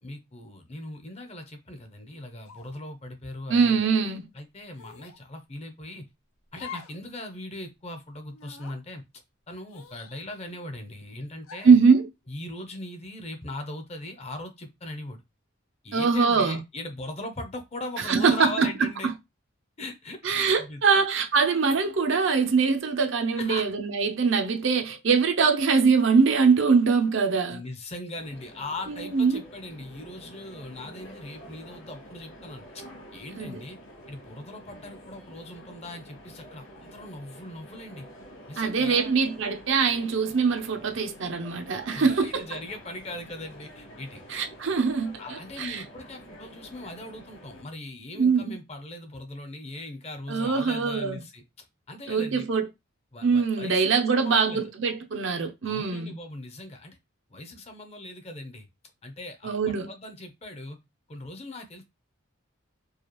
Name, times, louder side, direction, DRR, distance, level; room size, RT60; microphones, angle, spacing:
voice 1, 0.0-4.1 4.3-6.0 6.5-9.0 9.5-11.8 12.3-15.2 15.8-19.1 19.8-21.1 23.3-23.7 27.5-33.8 34.1-38.1 38.5-39.2 41.9-44.2 45.2-52.5 53.1-54.7 55.6-57.0 57.3-58.7 59.0-60.8 61.1-61.8, left 1 dB, 30° left, 0.7 m, -40 dB
sound 1, 2.4-2.8 3.5-3.7 4.7-5.2 6.5-7.0 7.4-7.5 8.3-8.8 9.7-10.6 11.4-11.8, left 6 dB, 85° left, 0.7 m, -45 dB
voice 2, 3.5-4.3 11.6-12.1 15.9-16.6 18.1-18.7 20.2-27.6 28.9-29.4 33.4-33.6 38.6-42.6 44.3-45.8 48.1-48.6 50.3-51.2 52.1-52.7 53.2-56.1 59.4-59.9, right 5 dB, 60° right, 0.6 m, -23 dB
sound 2, 28.1-47.6, equal, 65° left, 1.9 m, -48 dB
4.7 x 2.4 x 3.0 m
head